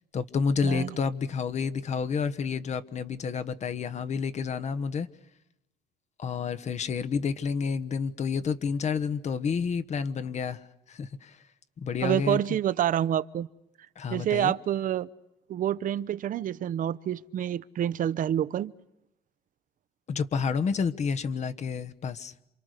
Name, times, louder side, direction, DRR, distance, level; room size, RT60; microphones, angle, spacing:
voice 1, 0.1-5.1 6.2-11.4 11.8-12.4 14.0-14.5 20.1-22.3, left 6 dB, 45° left, 1.3 m, -30 dB
voice 2, 12.0-13.5 14.1-15.1 15.5-18.7, right 10 dB, 55° right, 0.9 m, -27 dB
28.0 x 26.5 x 6.7 m
cardioid pair, 110°, 17 cm